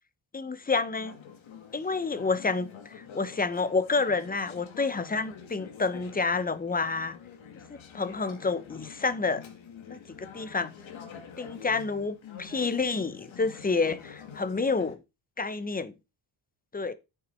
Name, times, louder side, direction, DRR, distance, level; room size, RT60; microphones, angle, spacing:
voice 1, 0.3-1.1 1.7-7.2 7.9-9.4 9.9-10.7 11.4-15.0 15.4-15.9 16.7-16.9, left 4 dB, 20° left, 1.0 m, -29 dB
Conversation / Chatter, 1.0-14.9, left 7 dB, 80° left, 2.0 m, -47 dB
8.6 x 7.1 x 4.5 m
cardioid pair, 110°, 46 cm